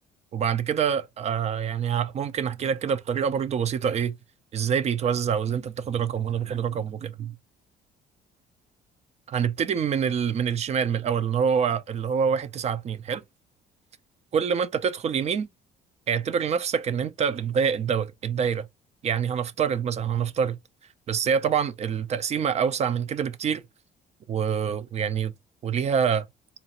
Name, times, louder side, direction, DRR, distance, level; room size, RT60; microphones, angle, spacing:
voice 1, 0.3-4.1 4.5-7.3 9.3-13.2 14.3-15.5 16.1-18.7 19.0-20.6 21.1-23.6 24.3-25.3 25.6-26.3, right 7 dB, 40° right, 0.5 m, -26 dB
4.1 x 2.4 x 2.9 m
cardioid pair, 110°, 17 cm